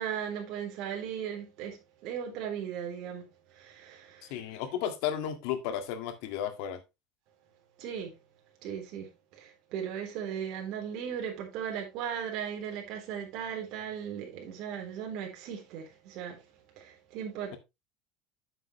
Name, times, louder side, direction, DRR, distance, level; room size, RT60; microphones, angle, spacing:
voice 1, 0.0-4.4 7.8-8.2 8.6-16.4 16.8-17.6, right 8 dB, 55° right, 3.7 m, -37 dB
voice 2, 4.3-6.8, left 10 dB, 65° left, 1.9 m, -33 dB
10.0 x 7.6 x 3.1 m
cardioid pair, 160°, 0 cm